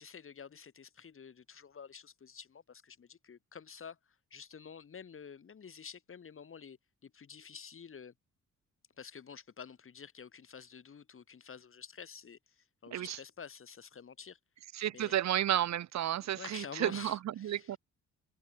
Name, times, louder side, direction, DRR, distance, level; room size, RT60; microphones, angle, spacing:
voice 1, 0.0-8.1 9.0-14.4 14.9-15.1 16.2-17.8, left 6 dB, 45° left, 4.2 m, -49 dB
voice 2, 14.7-17.8, right 12 dB, 65° right, 1.1 m, -32 dB
cardioid pair, 90°, 30 cm